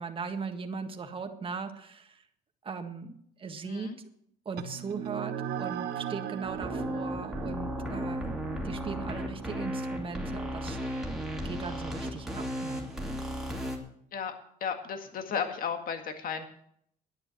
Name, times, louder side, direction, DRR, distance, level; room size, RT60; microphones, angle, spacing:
voice 1, 0.0-2.2 2.6-3.9 4.5-8.3 8.6-11.1 11.4-12.8, right 5 dB, 30° right, 5 dB, 1.7 m, -39 dB
voice 2, 3.6-4.0 14.1-14.3 14.6-16.4, left 6 dB, 55° left, 6 dB, 1.9 m, -34 dB
sound 1, 4.6-13.4, right 9 dB, 70° right, 1.2 m, -40 dB
sound 2, 6.4-13.8, equal, 5° right, 2.5 m, -35 dB
11.0 x 9.6 x 7.6 m, 0.69 s
cardioid pair, 110°, 17 cm